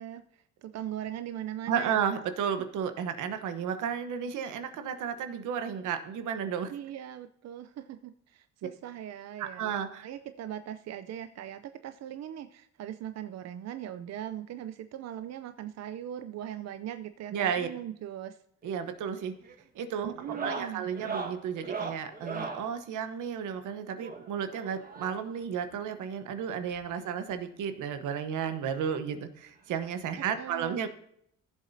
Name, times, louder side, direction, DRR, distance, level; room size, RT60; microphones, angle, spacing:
voice 1, 0.0-2.0 6.7-9.7 10.0-18.4 20.0-20.9 30.2-30.8, right 11 dB, 60° right, 10 dB, 0.6 m, -40 dB
voice 2, 1.7-6.7 9.4-10.1 17.3-17.7 18.6-19.4 19.7-20.1 20.4-30.9, right 8 dB, 85° right, 9 dB, 1.1 m, -33 dB
sound 1, 18.6-19.0 19.2-19.6 20.1-22.7 24.0-25.4 26.4-26.5 26.7-26.9 27.3-27.4 28.7-28.8 30.1-30.2, right 4 dB, 30° right, 1.6 m, -39 dB
16.0 x 7.3 x 2.7 m, 0.71 s
cardioid pair, 90°, 30 cm